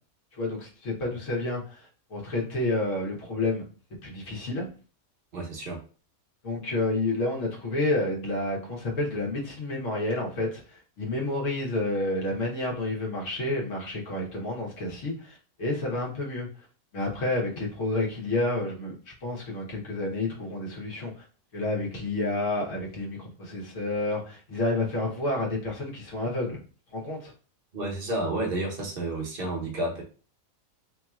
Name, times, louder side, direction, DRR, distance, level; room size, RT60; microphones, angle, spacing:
voice 1, 0.3-3.6 4.0-4.7 6.4-16.5 16.9-18.9 19.2-21.1 21.5-26.6 26.9-27.3, left 2 dB, 60° left, -2 dB, 1.6 m, -30 dB
voice 2, 5.3-5.8 27.7-30.0, right 1 dB, 45° right, 0 dB, 1.2 m, -30 dB
5.2 x 2.9 x 2.4 m, 0.37 s
omnidirectional pair, 1.5 m